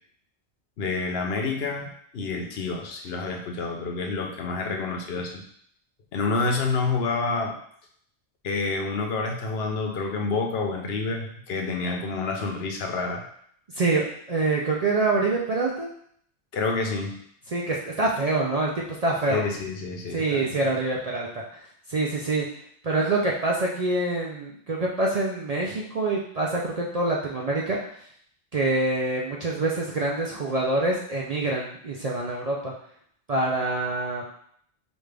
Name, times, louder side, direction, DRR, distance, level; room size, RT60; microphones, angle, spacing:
voice 1, 0.8-5.4 6.1-7.6 8.4-13.2 16.5-17.2 19.3-20.7, left 3 dB, 65° left, 2 dB, 0.9 m, -28 dB
voice 2, 13.7-15.9 17.5-19.4 20.1-22.5 22.8-28.1 28.5-32.7 33.3-34.2, right 2 dB, 50° right, -3 dB, 0.5 m, -26 dB
5.2 x 2.5 x 3.3 m, 0.65 s
omnidirectional pair, 1.1 m